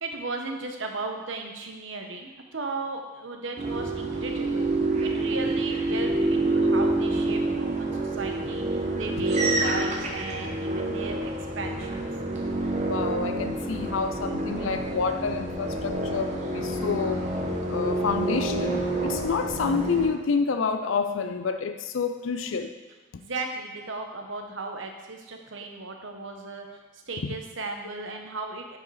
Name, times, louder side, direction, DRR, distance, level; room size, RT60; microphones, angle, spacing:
voice 1, 0.0-4.7 5.0-12.1 23.1-28.8, right 3 dB, 70° right, 3 dB, 1.1 m, -36 dB
sound 1, 3.6-20.1, right 2 dB, 35° right, 1.2 m, -27 dB
voice 2, 12.9-17.2 17.7-22.7 27.2-27.3, left 5 dB, 75° left, 8 dB, 0.5 m, -28 dB
9.4 x 4.9 x 4.8 m, 1.2 s
head